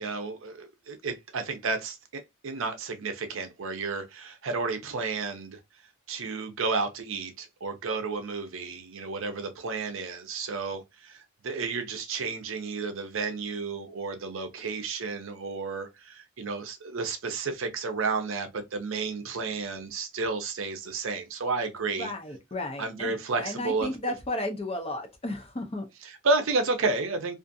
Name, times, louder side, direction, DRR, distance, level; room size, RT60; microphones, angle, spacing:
voice 1, 0.0-5.6 6.1-22.1 22.8-23.9 26.0-27.3, right 3 dB, 60° right, 0.5 m, -31 dB
voice 2, 21.9-25.9, left 1 dB, 25° left, 0.5 m, -34 dB
2.5 x 2.4 x 2.6 m
head